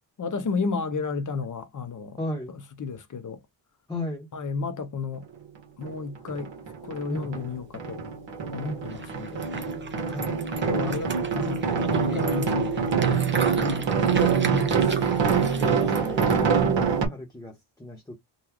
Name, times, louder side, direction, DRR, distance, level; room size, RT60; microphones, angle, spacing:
voice 1, 0.2-2.2 2.5-3.4 4.3-5.3 5.8-6.5 6.8-8.0 8.5-9.4 10.2-10.4 10.7-12.7 13.1-15.2, left 4 dB, 40° left, 0.8 m, -33 dB
voice 2, 2.2-2.5 3.9-4.3 7.1-7.3 8.6-8.9 10.1-10.4 15.2-18.1, left 1 dB, 10° left, 1.0 m, -35 dB
sound 1, 5.8-5.9 6.3-7.5 7.7-17.1, right 6 dB, 65° right, 1.5 m, -25 dB
sound 2, 8.9-16.4, right 4 dB, 25° right, 0.8 m, -39 dB
3.9 x 2.3 x 3.0 m
wide cardioid pair, 130°, 48 cm